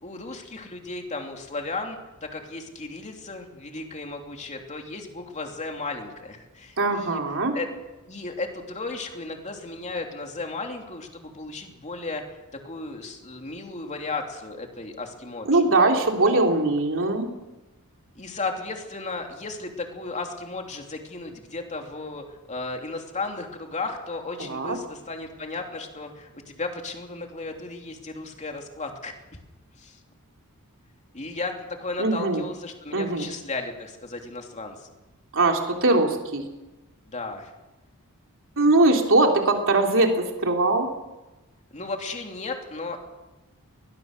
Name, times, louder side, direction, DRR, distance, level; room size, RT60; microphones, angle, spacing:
voice 1, 0.0-7.2 7.5-7.7 8.1-12.2 12.6-15.6 16.2-16.4 18.1-29.2 29.8-30.0 31.1-31.5 31.8-34.9 37.1-37.5 41.7-43.0, left 3 dB, 30° left, 3 dB, 3.0 m, -35 dB
voice 2, 6.8-7.6 15.5-17.3 24.4-24.8 32.0-32.4 32.9-33.3 35.3-36.4 38.6-40.9, right 2 dB, 60° right, 2 dB, 3.4 m, -21 dB
21.5 x 20.0 x 6.7 m, 1.1 s
head